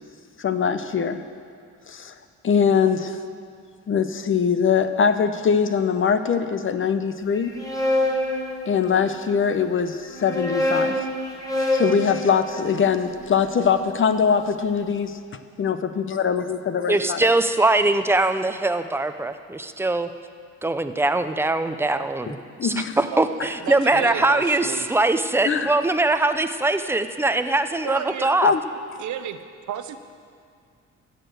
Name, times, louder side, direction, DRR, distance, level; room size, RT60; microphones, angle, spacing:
voice 1, 0.4-1.2 1.9-2.1 2.4-3.2 3.9-7.5 8.7-11.0 11.7-15.2 15.6-17.3 22.6-23.0 25.5-25.7 28.4-28.6, left 6 dB, 45° left, 10 dB, 0.8 m, -22 dB
sound 1, 7.3-9.2 10.0-14.2, left 1 dB, 10° left, 1.7 m, -27 dB
voice 2, 16.9-20.1 20.6-28.5, right 2 dB, 10° right, 9 dB, 0.6 m, -22 dB
voice 3, 23.1-24.9 27.8-28.3 29.0-29.4 29.7-30.0, right 10 dB, 75° right, 9 dB, 0.8 m, -32 dB
14.0 x 6.8 x 7.8 m, 2.2 s
cardioid pair, 90°, 30 cm